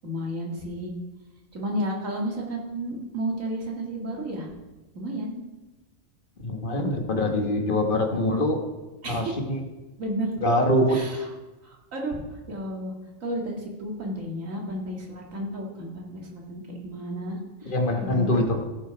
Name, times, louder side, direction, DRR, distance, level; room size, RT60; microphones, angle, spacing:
voice 1, 0.0-0.9 1.5-4.5 4.9-5.3 9.0-9.3 10.0-10.4 10.9-11.3 11.6-12.2 12.5-12.9 13.2-17.7 18.0-18.4, equal, 80° right, -1 dB, 2.3 m, -32 dB
voice 2, 6.4-8.6 9.1-9.6 10.4-11.0 17.6-18.6, left 1 dB, 45° left, 4 dB, 1.4 m, -24 dB
16.0 x 5.5 x 4.9 m, 1.1 s
omnidirectional pair, 1.3 m